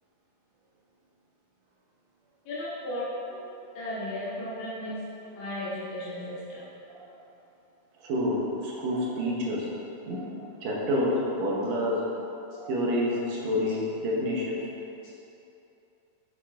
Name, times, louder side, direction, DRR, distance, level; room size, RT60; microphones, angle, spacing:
voice 1, 2.5-3.0 3.7-5.0 5.3-6.6, left 1 dB, 80° left, -10 dB, 3.2 m, -35 dB
voice 2, 3.1-3.5 5.4-5.5 6.9-7.0 8.0-9.7 10.1-12.1 12.5-14.7, left 1 dB, 65° right, -4 dB, 1.8 m, -29 dB
9.0 x 8.1 x 2.6 m, 2.8 s
omnidirectional pair, 4.2 m